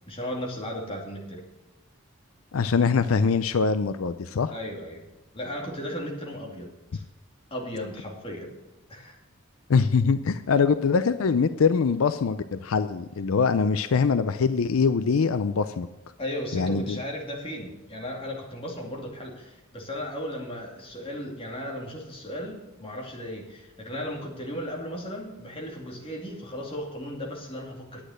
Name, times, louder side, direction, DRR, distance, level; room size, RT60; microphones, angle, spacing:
voice 1, 0.1-1.4 4.5-5.0 5.3-7.0 7.5-8.6 8.9-9.2 16.2-28.0, equal, 25° left, 0 dB, 2.5 m, -36 dB
voice 2, 2.5-4.5 9.7-15.9 16.5-17.0, left 5 dB, 75° left, 12 dB, 0.5 m, -23 dB
10.0 x 8.8 x 6.4 m, 1.0 s
head